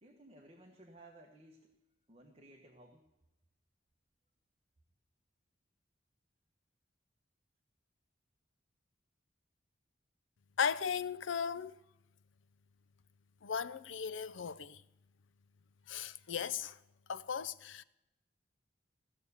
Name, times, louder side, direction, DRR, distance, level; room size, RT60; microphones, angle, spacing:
voice 1, 0.0-1.7 2.1-3.1, right 1 dB, 35° right, 1.4 m, -58 dB
voice 2, 10.6-11.7 13.4-14.8 15.9-16.8 17.1-17.8, left 7 dB, 85° left, 0.6 m, -36 dB
16.0 x 6.9 x 9.7 m
head